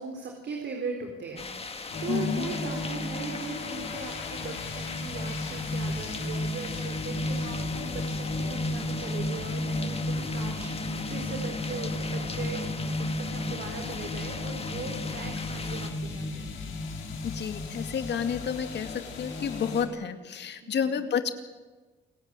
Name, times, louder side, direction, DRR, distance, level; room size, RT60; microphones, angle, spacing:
voice 1, 0.0-16.5 20.6-21.0, right 4 dB, 60° right, 2 dB, 4.3 m, -39 dB
sound 1, 1.4-15.9, left 4 dB, 30° left, 2.2 m, -40 dB
sound 2, 1.9-19.8, left 2 dB, 75° left, 5.3 m, -33 dB
voice 2, 2.1-2.5 17.2-21.3, left 7 dB, 60° left, 7 dB, 2.4 m, -30 dB
29.0 x 16.5 x 9.1 m, 1.3 s
cardioid pair, 90°, 20 cm